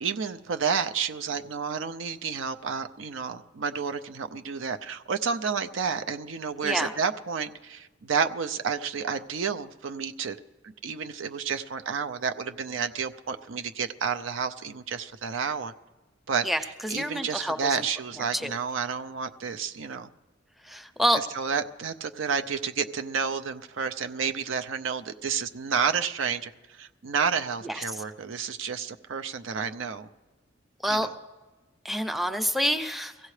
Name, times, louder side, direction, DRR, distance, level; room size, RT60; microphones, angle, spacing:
voice 1, 0.0-10.4 10.6-15.7 16.3-20.1 21.1-30.1 30.9-31.1, right 6 dB, 85° right, 7 dB, 0.6 m, -30 dB
voice 2, 16.4-17.8 18.3-18.5 20.7-21.2 27.6-27.8 30.8-31.1 31.8-33.1, equal, ahead, 8 dB, 0.6 m, -27 dB
23.5 x 16.0 x 3.3 m, 1.2 s
head